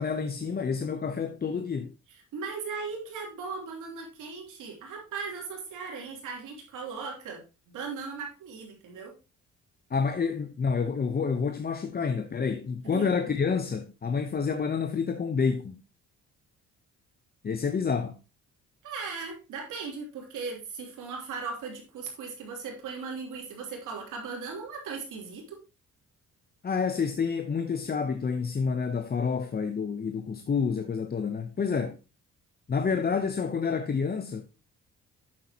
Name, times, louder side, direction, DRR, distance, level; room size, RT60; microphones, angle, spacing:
voice 1, 0.0-1.9 9.9-15.8 17.4-18.2 26.6-32.0 32.7-34.5, left 5 dB, 30° left, 0.8 m, -28 dB
voice 2, 2.3-9.2 12.8-13.0 18.8-25.6, right 5 dB, 85° right, 3.2 m, -38 dB
8.6 x 7.8 x 2.9 m
cardioid pair, 90°, 30 cm